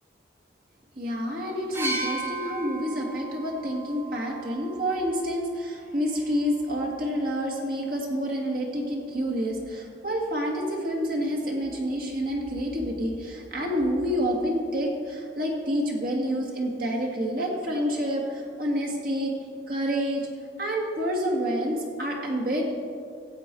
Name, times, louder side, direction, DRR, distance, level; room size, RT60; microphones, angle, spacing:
voice 1, 1.0-19.3 19.7-20.3 20.6-22.7, equal, 55° right, -1 dB, 1.9 m, -28 dB
sound 1, 1.7-5.5 6.6-6.7, right 2 dB, 10° right, 0.9 m, -35 dB
15.0 x 7.6 x 4.5 m, 2.3 s
head